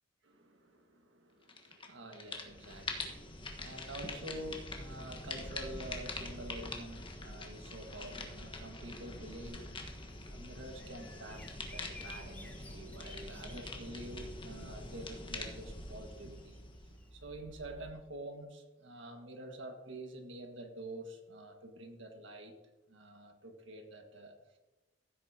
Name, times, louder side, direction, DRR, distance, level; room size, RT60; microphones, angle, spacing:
voice 1, 0.2-9.7 10.2-16.6 17.1-22.5 22.9-24.6, right 1 dB, 85° right, 3 dB, 1.7 m, -48 dB
sound 1, 1.5-1.9 2.1-17.1, left 2 dB, 25° left, 1.3 m, -44 dB
Bird vocalization bird call bird song, 9.4-17.9, left 1 dB, 10° left, 1.1 m, -54 dB
15.0 x 8.3 x 2.8 m, 1.2 s
head